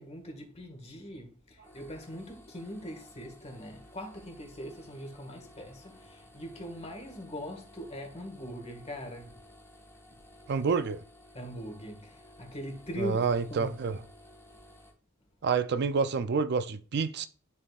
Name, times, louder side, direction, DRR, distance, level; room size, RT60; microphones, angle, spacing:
voice 1, 0.0-9.3 11.3-13.2 13.5-13.7, equal, 30° left, 1.6 m, -41 dB
sound 1, 1.6-14.9, left 1 dB, 10° left, 1.7 m, -55 dB
voice 2, 10.5-11.0 13.0-14.0 15.4-17.3, right 5 dB, 55° right, 0.4 m, -28 dB
11.0 x 4.2 x 2.4 m
head